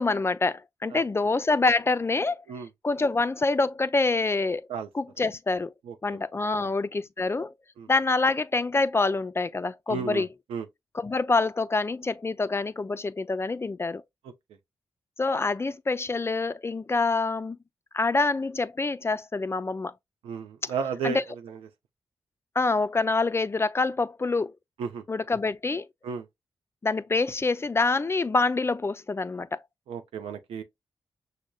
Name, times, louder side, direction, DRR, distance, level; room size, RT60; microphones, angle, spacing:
voice 1, 0.0-2.4 2.8-4.7 4.9-5.7 6.0-7.5 7.9-10.3 10.9-14.0 15.2-17.6 17.9-19.9 21.0-21.2 22.6-24.5 25.1-25.9 26.8-29.6, left 3 dB, 25° left, 0.3 m, -26 dB
voice 2, 5.8-6.2 6.5-6.7 7.8-7.9 9.9-10.7 14.2-14.3 20.2-21.6 24.8-25.0 26.0-26.3 29.9-30.6, right 6 dB, 85° right, 0.5 m, -34 dB
6.2 x 2.1 x 2.2 m
supercardioid pair, 40°, 9 cm